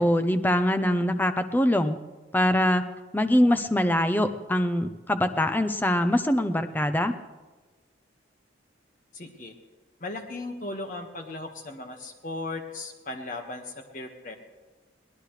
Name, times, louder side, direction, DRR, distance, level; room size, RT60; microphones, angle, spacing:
voice 1, 0.0-2.0 2.3-2.8 3.1-7.1, left 1 dB, 10° left, 8 dB, 0.7 m, -23 dB
voice 2, 9.1-9.6 10.0-14.4, left 2 dB, 45° left, 4 dB, 1.7 m, -37 dB
23.0 x 18.5 x 3.3 m, 1.3 s
head